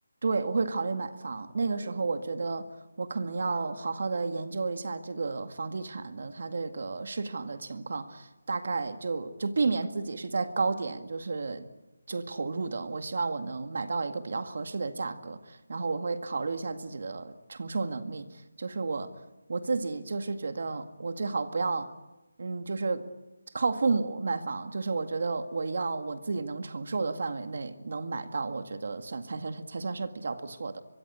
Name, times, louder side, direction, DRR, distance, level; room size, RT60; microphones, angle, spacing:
voice 1, 0.2-2.6 3.0-11.7 12.1-19.1 19.5-21.9 22.4-23.1 23.5-30.8, right 4 dB, 50° right, 1.9 m, -32 dB
24.5 x 23.0 x 8.4 m
figure-of-eight pair, 175°, 0 cm